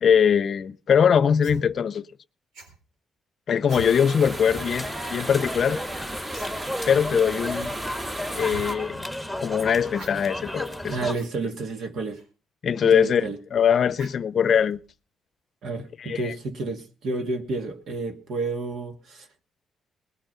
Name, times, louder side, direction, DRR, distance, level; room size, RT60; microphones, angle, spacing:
voice 1, 0.0-2.1 3.5-5.8 6.9-7.7 8.3-9.1 9.4-11.1 12.6-14.8 16.0-16.3, left 7 dB, 55° left, 0.6 m, -22 dB
sound 1, 1.4-1.6 2.5-2.8 3.6-3.9 5.1-5.3 5.6-5.7 6.3-6.5 6.8-6.9 7.5-7.7 8.4-8.7 9.9-10.1 11.0-11.3 12.1-12.2 14.0-14.3 14.7-14.9, right 3 dB, 90° right, 4.2 m, -42 dB
sound 2, 3.7-8.7, right 1 dB, 30° right, 2.9 m, -35 dB
sound 3, 4.2-11.1, left 1 dB, 5° right, 1.8 m, -34 dB
voice 2, 10.9-12.2 12.8-13.4 15.6-19.3, right 3 dB, 70° right, 2.3 m, -30 dB
19.5 x 9.0 x 5.6 m
cardioid pair, 90°, 0 cm